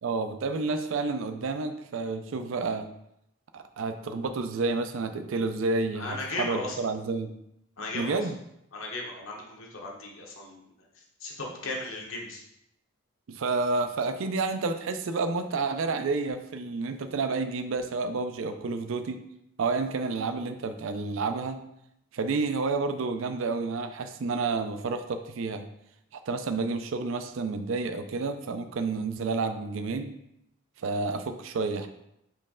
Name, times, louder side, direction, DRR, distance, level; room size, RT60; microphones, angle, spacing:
voice 1, 0.0-2.9 3.5-7.3 7.9-8.4 13.3-19.2 19.6-21.6 22.1-25.6 26.3-30.1 30.8-31.9, right 3 dB, 70° right, 8 dB, 0.4 m, -30 dB
voice 2, 5.9-6.8 7.8-8.2 8.7-10.7 11.2-12.4, left 2 dB, 70° left, -1 dB, 1.0 m, -36 dB
4.4 x 3.1 x 3.6 m, 0.79 s
head